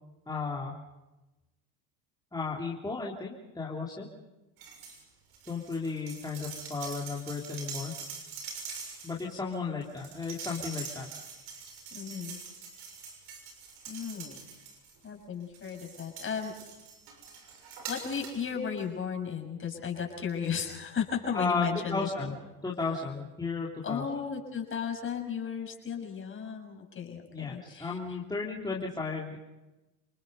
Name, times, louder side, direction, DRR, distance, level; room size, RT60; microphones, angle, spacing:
voice 1, 0.3-0.8 2.3-4.1 5.5-7.9 9.0-11.1 21.3-22.3 22.6-24.1 27.3-29.4, left 4 dB, 10° left, -4 dB, 3.4 m, -34 dB
sound 1, 4.6-5.0 5.3-15.1 15.5-18.5 18.8-18.9, right 5 dB, 75° right, 6.8 m, -44 dB
voice 2, 11.9-12.4 13.9-14.4 15.0-16.5 17.9-22.4 22.8-23.1 23.8-28.2, left 7 dB, 30° left, 2 dB, 6.4 m, -35 dB
30.0 x 20.0 x 5.4 m, 1.0 s
supercardioid pair, 95°, 38 cm